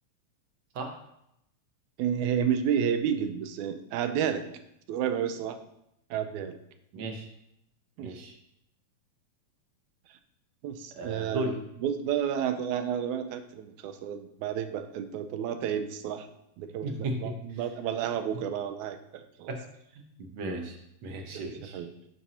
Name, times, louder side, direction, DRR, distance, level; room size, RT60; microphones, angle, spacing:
voice 1, 2.0-4.5 4.9-5.6 6.1-6.6 8.0-8.2 10.6-11.5 11.8-16.3 16.6-19.5 21.3-21.9, right 8 dB, 85° right, 9 dB, 2.0 m, -31 dB
voice 2, 6.9-7.3 8.0-8.4 10.9-11.5 16.8-17.6 18.3-18.4 19.5-19.6 19.9-21.8, right 2 dB, 65° right, 4 dB, 1.3 m, -36 dB
10.5 x 6.1 x 2.8 m, 0.78 s
omnidirectional pair, 3.3 m